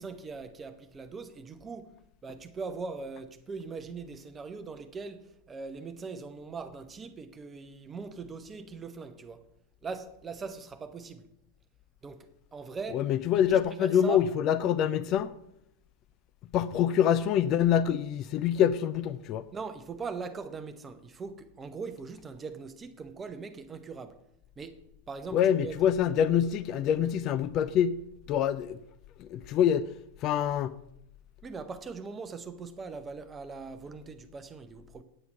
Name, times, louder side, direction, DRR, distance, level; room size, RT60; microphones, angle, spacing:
voice 1, 0.0-1.9 2.2-9.5 9.8-11.3 12.0-13.1 13.5-14.2 19.5-24.1 24.6-24.8 25.1-25.7 31.4-35.0, right 4 dB, 20° right, 0.9 m, -41 dB
voice 2, 12.9-15.3 16.5-19.4 25.3-28.0 28.3-28.8 29.2-29.9 30.2-30.7, left 9 dB, 35° left, 0.4 m, -25 dB
9.0 x 8.2 x 5.3 m
figure-of-eight pair, 90°, 0 cm